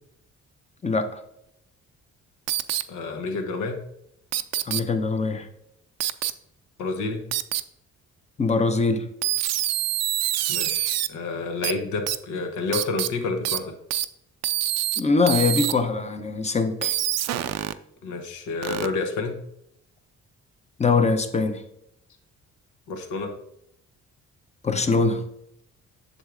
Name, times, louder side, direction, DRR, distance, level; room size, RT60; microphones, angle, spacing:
sound 1, 2.5-2.8 4.3-4.8 6.0-6.3 7.3-7.6 9.2-11.1 11.6-11.7 12.1-12.2 12.7-13.1 13.4-13.6 13.9-14.0 14.4-15.0 15.3-15.7 16.8-17.7 18.6-18.9, right 13 dB, 60° right, 0.4 m, -25 dB
voice 1, 2.9-3.8 6.8-7.3 10.5-13.7 18.0-19.4 22.9-23.3, left 3 dB, 90° left, 1.0 m, -29 dB
voice 2, 4.7-5.5 8.4-9.0 15.0-16.9 20.8-21.6 24.6-25.2, left 4 dB, 20° left, 0.7 m, -22 dB
7.9 x 6.4 x 2.5 m
cardioid pair, 90°, 30 cm